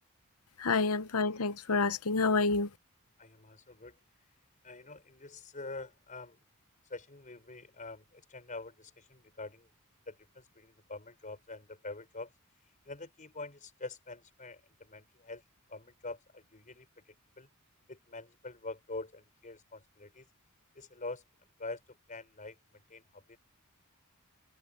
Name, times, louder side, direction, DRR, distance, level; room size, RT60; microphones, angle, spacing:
voice 1, 0.6-2.7, left 4 dB, 75° left, 0.9 m, -28 dB
voice 2, 3.2-4.0 4.6-6.4 6.9-9.7 10.1-12.3 12.8-15.4 15.7-17.5 17.9-20.3 20.7-21.2 21.6-23.4, left 3 dB, 35° left, 5.1 m, -45 dB
head